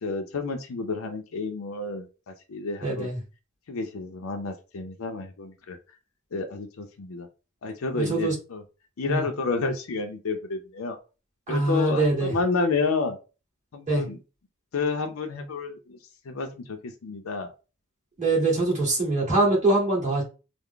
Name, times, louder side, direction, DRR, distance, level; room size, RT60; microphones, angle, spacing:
voice 1, 0.0-3.1 3.7-5.8 6.3-7.3 7.6-8.6 9.0-11.0 11.5-13.2 13.7-14.2 14.7-16.0 16.3-17.5, left 4 dB, 70° left, 4 dB, 0.5 m, -30 dB
voice 2, 2.8-3.2 7.9-8.3 9.1-9.2 11.5-12.3 13.9-14.0 18.2-20.2, right 2 dB, 35° right, -5 dB, 1.8 m, -23 dB
3.4 x 2.0 x 3.6 m, 0.32 s
head